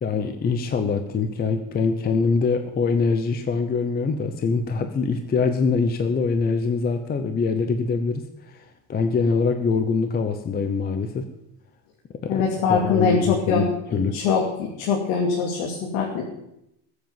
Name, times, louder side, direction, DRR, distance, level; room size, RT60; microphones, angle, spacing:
voice 1, 0.0-8.6 8.9-11.2 12.2-14.2, left 4 dB, 20° left, 7 dB, 0.7 m, -24 dB
voice 2, 12.3-13.7 14.1-14.4 14.8-16.2, left 5 dB, 90° left, 0 dB, 2.8 m, -22 dB
20.0 x 7.9 x 7.4 m, 0.84 s
cardioid pair, 180°, 49 cm